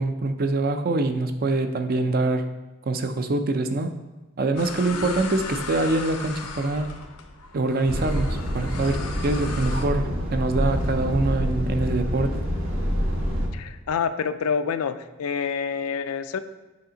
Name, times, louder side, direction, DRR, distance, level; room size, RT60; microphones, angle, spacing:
voice 1, 0.0-2.5 2.9-3.9 4.4-7.0 7.5-12.4, right 2 dB, 40° right, 8 dB, 0.4 m, -24 dB
sound 1, 4.6-9.8, left 5 dB, 90° left, 0.8 m, -37 dB
Truck, 7.9-13.5, equal, 60° right, 1.3 m, -26 dB
voice 2, 13.5-16.4, left 6 dB, 70° left, 11 dB, 0.4 m, -27 dB
7.1 x 5.0 x 3.9 m, 1.2 s
head